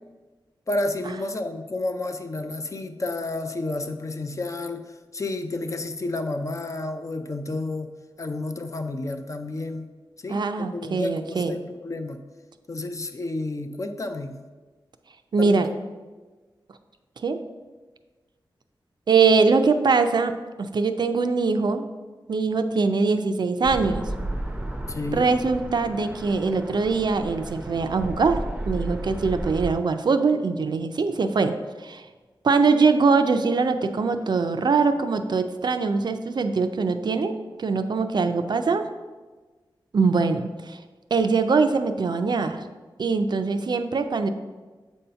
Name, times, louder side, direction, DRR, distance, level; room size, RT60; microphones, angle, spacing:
voice 1, 0.7-9.9 10.2-12.2 12.7-14.4 15.4-15.8 24.9-25.3, left 2 dB, 40° left, 7 dB, 0.5 m, -31 dB
voice 2, 10.3-11.6 15.3-15.7 17.2-17.4 19.1-21.9 22.3-24.1 25.1-28.4 28.7-32.0 32.4-38.9 39.9-40.8 41.1-42.6 43.0-44.3, right 4 dB, 60° right, 8 dB, 0.4 m, -22 dB
sound 1, 23.6-29.7, right 1 dB, 10° right, 0.5 m, -33 dB
7.5 x 2.7 x 5.5 m, 1.3 s
wide cardioid pair, 100°, 8 cm